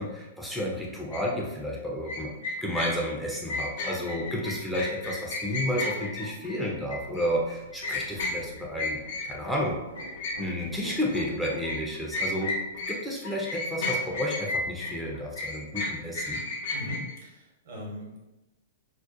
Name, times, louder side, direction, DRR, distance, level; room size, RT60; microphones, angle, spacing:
voice 1, 0.0-2.3 2.6-9.8 10.4-16.4, equal, ahead, -4 dB, 0.4 m, -31 dB
sound 1, 1.1-1.2 2.1-9.6 10.0-13.0 13.2-17.1, left 2 dB, 60° left, 0.5 m, -33 dB
sound 2, 5.2-11.6, right 1 dB, 90° right, 0.4 m, -48 dB
voice 2, 16.7-18.2, left 1 dB, 65° right, -3 dB, 1.0 m, -39 dB
2.6 x 2.0 x 2.4 m, 0.99 s
hypercardioid pair, 115°, 0 cm